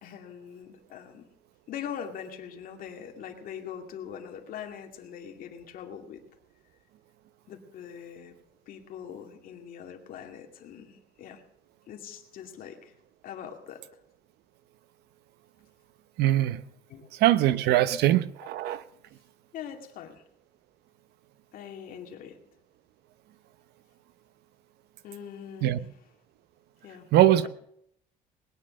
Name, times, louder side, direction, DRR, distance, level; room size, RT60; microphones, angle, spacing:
voice 1, 0.0-1.3 1.7-6.2 7.5-8.4 8.7-11.4 11.9-12.9 13.2-13.8 16.9-17.1 17.9-18.0 19.5-20.2 21.5-22.4 25.0-26.1 26.8-27.1 27.4-27.5, left 8 dB, 60° left, 4 dB, 2.4 m, -42 dB
voice 2, 16.2-16.6 17.2-18.2 18.5-18.8 25.6-25.8 27.1-27.5, right 13 dB, 80° right, 15 dB, 0.8 m, -21 dB
20.0 x 10.0 x 6.5 m, 0.71 s
cardioid pair, 160°, 17 cm